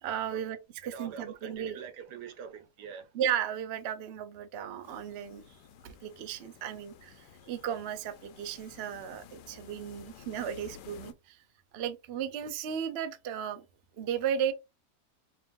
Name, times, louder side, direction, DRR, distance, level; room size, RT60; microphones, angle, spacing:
voice 1, 0.0-0.6 0.8-1.9 3.1-5.6 5.8-11.4 11.7-13.6 14.0-14.5, right 9 dB, 60° right, 0.7 m, -35 dB
voice 2, 0.8-3.1, right 7 dB, 80° right, 1.4 m, -44 dB
sound 1, 4.8-11.1, left 8 dB, 85° left, 1.3 m, -53 dB
5.4 x 3.1 x 2.5 m
omnidirectional pair, 1.8 m